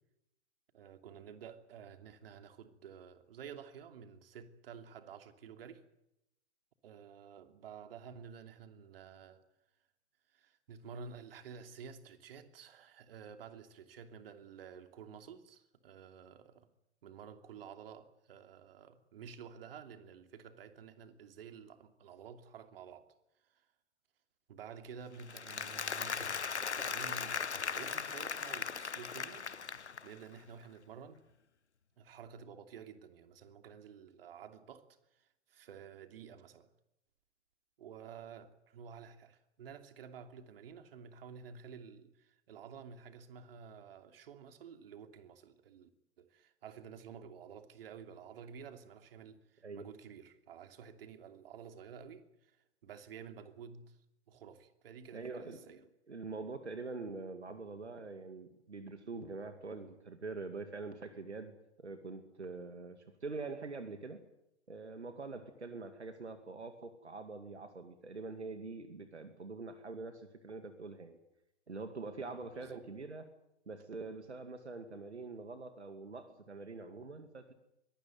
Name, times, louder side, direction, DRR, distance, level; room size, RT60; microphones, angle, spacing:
voice 1, 0.7-5.8 6.8-9.4 10.3-16.7 17.0-23.1 23.5-23.6 24.5-27.4 27.7-29.5 30.0-31.2 32.0-34.9 35.1-36.7 37.8-45.9 46.2-52.6 52.8-54.0 54.3-55.8 72.3-72.8, right 7 dB, 60° right, 2.9 m, -51 dB
Applause, 25.2-30.2, left 6 dB, 85° left, 1.0 m, -38 dB
voice 2, 55.1-64.2 64.7-71.2 71.7-73.3 73.7-77.5, right 3 dB, 80° right, 2.4 m, -45 dB
23.5 x 19.0 x 9.3 m
figure-of-eight pair, 105°, 33 cm